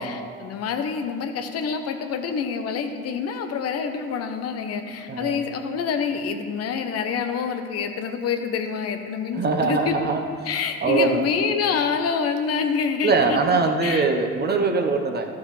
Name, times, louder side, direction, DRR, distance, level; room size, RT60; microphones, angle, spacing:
voice 1, 0.0-9.9 10.4-13.4 13.8-14.1, left 6 dB, 55° left, 6 dB, 0.9 m, -27 dB
voice 2, 5.1-5.4 9.3-10.2 10.8-11.3 13.0-15.3, right 4 dB, 35° right, 4 dB, 1.1 m, -22 dB
12.5 x 7.1 x 3.3 m, 2.2 s
hypercardioid pair, 55°, 29 cm